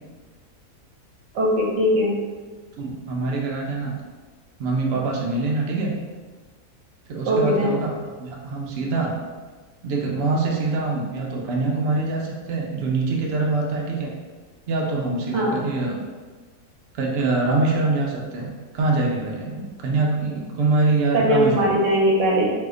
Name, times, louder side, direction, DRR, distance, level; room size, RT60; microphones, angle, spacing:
voice 1, 1.3-2.2 7.3-7.7 15.3-15.6 21.1-22.5, equal, 60° right, -3 dB, 0.9 m, -20 dB
voice 2, 2.8-3.9 4.6-5.9 7.1-7.9 8.2-9.2 9.8-14.1 14.7-16.0 16.9-21.8, right 3 dB, 85° right, -2 dB, 0.5 m, -24 dB
2.7 x 2.1 x 3.6 m, 1.4 s
omnidirectional pair, 1.7 m